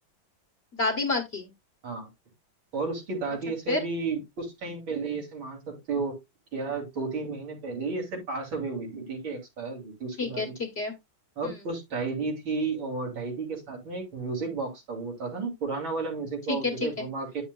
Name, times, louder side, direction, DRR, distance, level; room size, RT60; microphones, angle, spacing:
voice 1, 0.7-1.5 3.7-3.8 10.2-10.9 11.4-11.5 16.5-17.0, left 3 dB, 35° left, 3 dB, 1.5 m, -29 dB
voice 2, 2.7-6.2 6.5-10.6 11.4-17.4, right 4 dB, 80° right, 0 dB, 3.8 m, -32 dB
9.6 x 7.0 x 2.3 m, 0.21 s
omnidirectional pair, 2.1 m